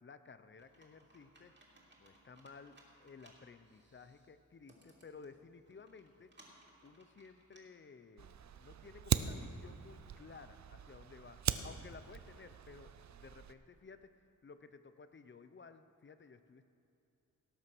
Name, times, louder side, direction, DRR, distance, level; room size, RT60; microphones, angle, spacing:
voice 1, 0.0-1.5 2.0-6.3 6.8-14.1 14.4-16.7, left 5 dB, 40° left, 11 dB, 0.7 m, -56 dB
Computer keyboard, 0.6-7.6, right 1 dB, 35° right, 2.9 m, -65 dB
Fire, 8.2-13.5, right 9 dB, 65° right, 0.6 m, -40 dB
18.0 x 7.9 x 6.2 m, 2.8 s
wide cardioid pair, 95°, 31 cm